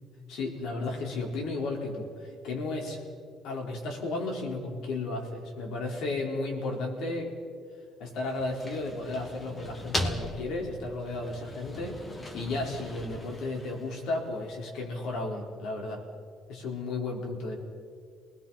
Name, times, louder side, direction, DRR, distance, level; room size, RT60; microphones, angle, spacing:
voice 1, 0.3-3.0 3.4-7.3 8.0-11.9 12.3-16.0 16.5-17.6, left 2 dB, 70° left, 1 dB, 4.6 m, -33 dB
sound 1, 8.3-14.3, left 1 dB, 20° left, 1.6 m, -38 dB
28.0 x 20.0 x 5.9 m, 2.1 s
cardioid pair, 165°, 0 cm